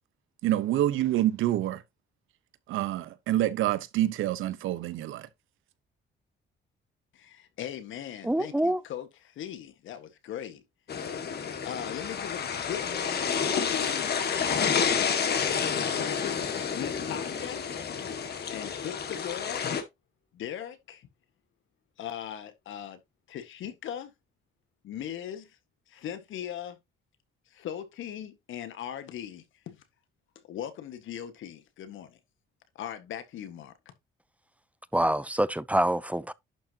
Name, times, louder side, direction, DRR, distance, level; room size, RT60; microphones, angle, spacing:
voice 1, 0.4-1.8 2.7-5.3, right 13 dB, 85° right, 1.0 m, -27 dB
voice 2, 7.1-10.6 11.7-14.7 15.3-17.6 18.5-19.7 20.3-21.1 22.0-23.0 23.3-24.1 24.8-25.6 25.9-26.8 27.5-29.8 30.4-32.2 32.8-33.7, left 10 dB, 80° left, 1.7 m, -39 dB
voice 3, 8.2-8.8 34.9-36.3, right 1 dB, 5° right, 0.5 m, -26 dB
sound 1, 10.9-19.8, left 6 dB, 55° left, 2.0 m, -29 dB
11.0 x 6.1 x 2.9 m
cardioid pair, 90°, 20 cm